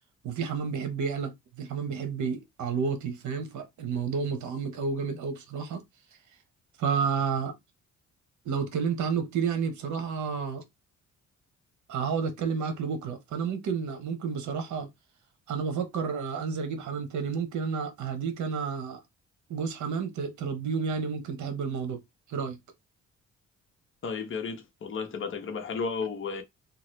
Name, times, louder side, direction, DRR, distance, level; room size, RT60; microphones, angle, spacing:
voice 1, 0.2-5.8 6.8-7.5 8.4-10.6 11.9-14.9 15.5-19.0 19.5-22.0 22.3-22.6, right 6 dB, 70° right, 1.0 m, -31 dB
voice 2, 24.0-26.4, left 5 dB, 45° left, 0.9 m, -33 dB
2.9 x 2.4 x 3.1 m
cardioid pair, 90°, 30 cm